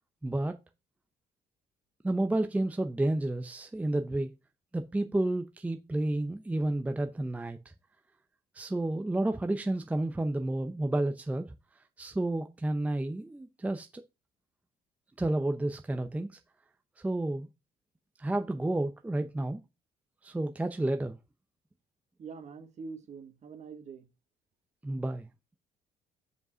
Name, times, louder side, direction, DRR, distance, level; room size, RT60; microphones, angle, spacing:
voice 1, 0.2-0.6 2.0-4.3 4.7-7.6 8.5-11.5 12.0-14.0 15.2-16.4 17.0-17.5 18.2-19.6 20.2-21.2 24.8-25.3, right 1 dB, 10° right, 0.6 m, -31 dB
voice 2, 22.2-24.1, right 5 dB, 45° right, 1.6 m, -44 dB
5.3 x 4.9 x 6.0 m
cardioid pair, 110°, 17 cm